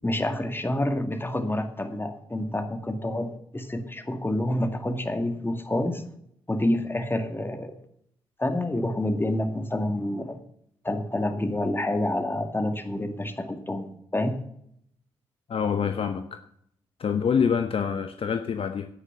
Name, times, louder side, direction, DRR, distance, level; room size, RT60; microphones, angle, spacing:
voice 1, 0.0-6.0 6.5-7.8 8.4-10.4 10.8-14.3, left 1 dB, 20° left, 7 dB, 2.2 m, -28 dB
voice 2, 15.5-16.4 17.0-18.9, left 7 dB, 55° left, 8 dB, 0.9 m, -26 dB
11.0 x 8.5 x 6.9 m, 0.69 s
hypercardioid pair, 40°, 12 cm